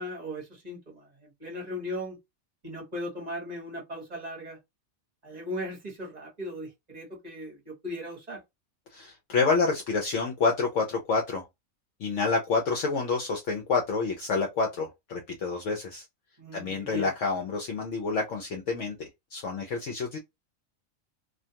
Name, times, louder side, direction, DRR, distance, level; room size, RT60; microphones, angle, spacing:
voice 1, 0.0-2.2 2.6-4.6 5.2-8.4 16.4-17.1, equal, 35° right, 1.0 m, -38 dB
voice 2, 8.9-11.4 12.0-16.1 16.5-20.2, left 4 dB, 70° left, 0.9 m, -28 dB
2.4 x 2.2 x 2.7 m
omnidirectional pair, 1.4 m